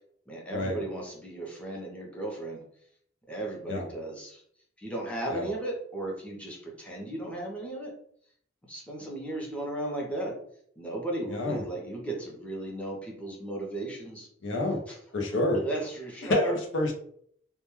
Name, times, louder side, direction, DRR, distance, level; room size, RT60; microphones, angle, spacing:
voice 1, 0.3-2.6 3.3-4.4 4.8-7.9 8.7-10.4 10.8-14.3 14.9-15.0 15.5-16.5, right 1 dB, 5° left, -2 dB, 0.6 m, -35 dB
voice 2, 11.3-11.6 14.4-14.8 15.1-15.6 16.2-16.9, left 1 dB, 70° left, 2 dB, 0.6 m, -28 dB
2.2 x 2.2 x 3.0 m, 0.65 s
head